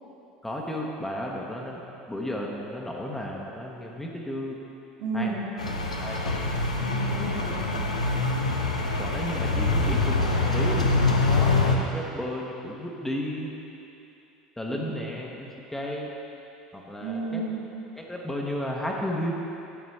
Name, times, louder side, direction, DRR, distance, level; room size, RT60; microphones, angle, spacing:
voice 1, 0.4-1.8 2.1-4.6 5.1-5.3 5.7-6.3 9.0-13.5 14.6-16.1 16.7-17.4 18.0-19.3, left 1 dB, 10° left, -2 dB, 1.1 m, -33 dB
voice 2, 5.0-5.5 6.8-7.9 14.7-14.9 17.0-17.5, right 2 dB, 55° right, -5 dB, 2.1 m, -32 dB
sound 1, 5.6-11.8, left 3 dB, 85° left, 0.7 m, -25 dB
11.5 x 8.0 x 3.3 m, 2.9 s
figure-of-eight pair, 70°, 4 cm